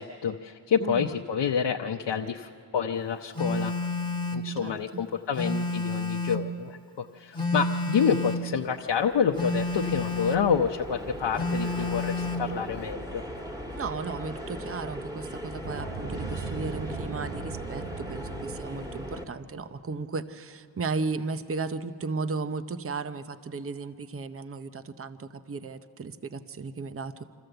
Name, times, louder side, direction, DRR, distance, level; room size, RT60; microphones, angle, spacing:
voice 1, 0.0-3.7 4.3-13.2, left 7 dB, 75° left, 2 dB, 0.8 m, -28 dB
voice 2, 0.8-1.1 4.6-5.0 13.7-27.2, right 4 dB, 30° right, 11 dB, 0.7 m, -35 dB
Telephone, 3.3-4.5 5.3-6.5 7.3-8.5 9.3-10.5 11.3-12.5, left 2 dB, 10° left, 1.6 m, -30 dB
sound 1, 8.4-19.2, equal, 10° right, 1.7 m, -39 dB
sound 2, 15.6-19.6, right 4 dB, 80° right, 1.2 m, -39 dB
26.5 x 14.0 x 7.8 m, 2.7 s
wide cardioid pair, 85°, 43 cm